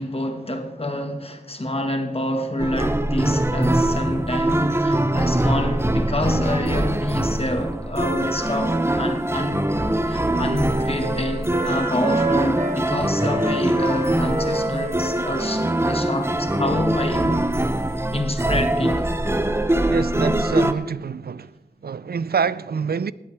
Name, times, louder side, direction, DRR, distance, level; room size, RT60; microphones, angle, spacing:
voice 1, 0.0-9.7 10.1-17.4 18.1-19.1, left 1 dB, 35° left, 1.6 m, -27 dB
sound 1, 2.6-20.7, right 1 dB, 15° right, 0.6 m, -23 dB
Wind instrument woodwind instrument, 8.8-12.8 13.2-17.6, right 2 dB, 45° right, 0.8 m, -31 dB
voice 2, 19.9-21.5 21.8-23.1, right 6 dB, 70° right, 0.4 m, -26 dB
19.0 x 8.3 x 3.4 m
wide cardioid pair, 40°, 16 cm